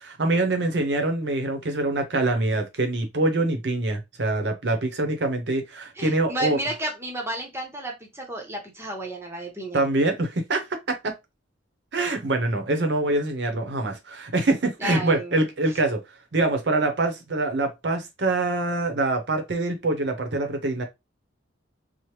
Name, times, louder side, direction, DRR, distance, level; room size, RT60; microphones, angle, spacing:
voice 1, 0.2-6.6 9.7-11.1 11.9-16.0 16.3-20.8, right 2 dB, 60° right, 0.7 m, -24 dB
voice 2, 6.0-9.8 14.8-15.4, right 1 dB, 15° right, 0.8 m, -32 dB
3.1 x 2.0 x 2.9 m
head